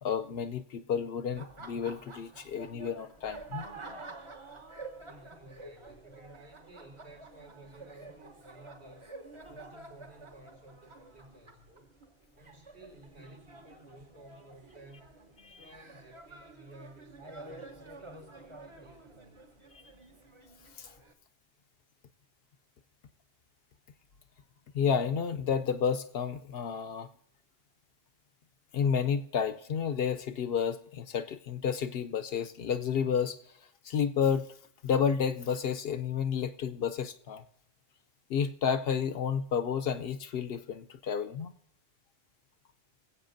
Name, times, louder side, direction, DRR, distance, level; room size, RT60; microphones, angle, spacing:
voice 1, 0.0-3.6 15.4-15.6 20.8-20.9 24.7-27.1 28.7-33.4 33.8-34.5 34.8-37.4 38.3-41.5, left 7 dB, 65° left, 10 dB, 0.8 m, -31 dB
Laughter, 1.3-21.1, right 3 dB, 30° right, 0.9 m, -49 dB
voice 2, 5.0-9.1 9.5-11.9 12.4-15.1 15.5-19.4, right 1 dB, 75° right, -2 dB, 4.8 m, -55 dB
21.5 x 8.1 x 2.6 m, 0.73 s
omnidirectional pair, 1.1 m